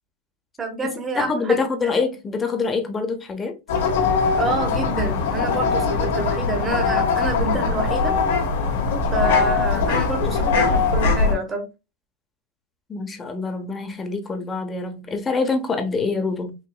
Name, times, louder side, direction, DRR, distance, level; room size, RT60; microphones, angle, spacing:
voice 1, 0.6-1.9 4.3-8.1 9.1-11.7, right 2 dB, 20° right, 1.1 m, -28 dB
voice 2, 1.2-3.6 12.9-16.5, left 4 dB, 20° left, 0.9 m, -25 dB
sound 1, 3.7-11.3, left 4 dB, 80° left, 1.4 m, -21 dB
4.8 x 2.9 x 2.2 m
supercardioid pair, 120°, 0 cm